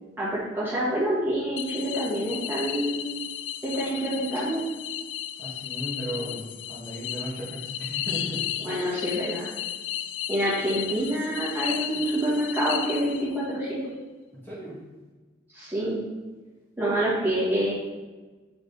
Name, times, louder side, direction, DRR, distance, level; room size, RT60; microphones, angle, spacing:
voice 1, 0.2-3.0 3.6-4.6 8.6-9.5 10.3-13.8 15.5-16.0 16.8-17.7, right 1 dB, 10° right, -9 dB, 1.6 m, -27 dB
sound 1, 1.6-13.5, left 11 dB, 85° left, 0.3 m, -34 dB
voice 2, 5.4-8.5 14.3-14.8, equal, 10° left, -8 dB, 1.7 m, -36 dB
6.1 x 4.7 x 4.0 m, 1.3 s
head